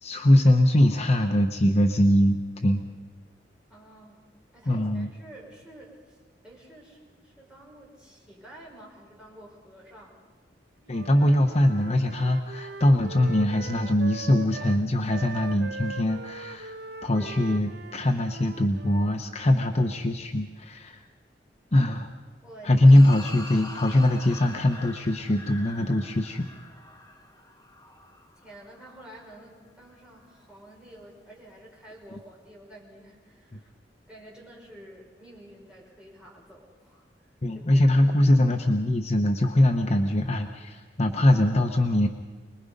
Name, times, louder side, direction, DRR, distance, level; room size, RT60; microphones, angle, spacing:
voice 1, 0.0-2.8 4.7-5.1 10.9-16.8 17.0-21.0 21.7-22.1 22.6-26.5 37.4-42.1, left 1 dB, 40° left, 4 dB, 0.9 m, -22 dB
voice 2, 3.7-4.2 4.5-6.2 6.4-10.2 22.4-22.7 28.4-33.7 34.0-38.4, right 1 dB, 5° right, -4 dB, 5.6 m, -49 dB
Wind instrument woodwind instrument, 10.9-19.2, right 4 dB, 65° right, 0.8 m, -41 dB
sound 1, 22.8-29.4, left 2 dB, 20° left, 1.7 m, -44 dB
25.0 x 20.5 x 5.3 m, 1.4 s
head